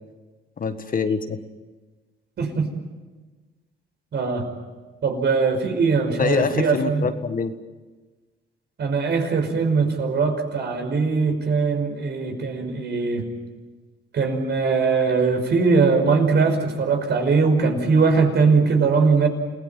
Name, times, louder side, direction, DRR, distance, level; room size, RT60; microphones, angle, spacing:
voice 1, 0.6-1.4 6.2-7.5, left 5 dB, 45° left, 9 dB, 1.7 m, -24 dB
voice 2, 4.1-4.5 5.0-7.0 8.8-13.3 14.1-19.3, right 4 dB, 60° right, 4 dB, 5.6 m, -20 dB
28.5 x 17.5 x 9.2 m, 1.3 s
cardioid pair, 90°, 20 cm